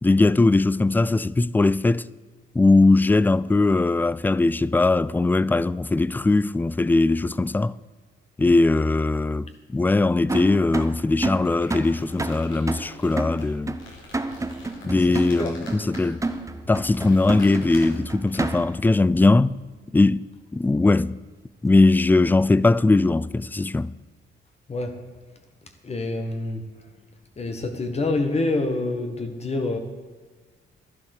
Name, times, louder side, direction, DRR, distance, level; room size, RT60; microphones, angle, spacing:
voice 1, 0.0-2.0 2.5-7.7 8.4-13.8 14.8-16.2 16.7-19.6 19.9-20.3 20.5-21.2 21.6-23.9, left 2 dB, 10° left, 0.3 m, -20 dB
sound 1, 10.3-18.9, right 2 dB, 15° right, 1.0 m, -30 dB
sound 2, 11.3-18.7, left 2 dB, 80° left, 4.7 m, -46 dB
voice 2, 15.1-15.5 24.7-24.9 25.8-26.6 27.4-29.8, left 2 dB, 30° left, 1.6 m, -26 dB
11.5 x 11.0 x 6.6 m
cardioid pair, 90°, 20 cm